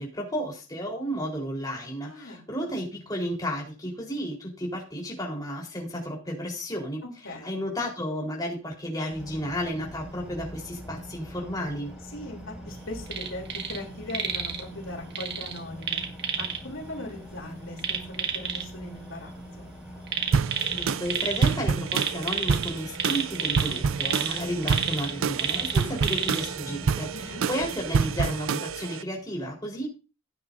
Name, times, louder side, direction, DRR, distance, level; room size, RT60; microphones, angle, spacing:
voice 1, 0.0-7.0 7.4-11.9 20.7-29.9, equal, 20° left, -1 dB, 4.2 m, -32 dB
voice 2, 2.0-2.8 7.2-7.6 12.1-16.0 16.4-19.7 27.1-27.5, left 1 dB, 80° left, 0 dB, 3.4 m, -40 dB
sound 1, 9.1-28.3, equal, ahead, 6.3 m, -43 dB
sound 2, 13.1-13.8 14.1-14.6 15.1-16.6 17.8-18.6 20.1-21.5 21.9-26.5 26.9-27.0, right 7 dB, 55° right, 1.7 m, -30 dB
sound 3, 20.3-29.0, right 5 dB, 90° right, 0.5 m, -28 dB
16.0 x 9.4 x 2.7 m, 0.33 s
head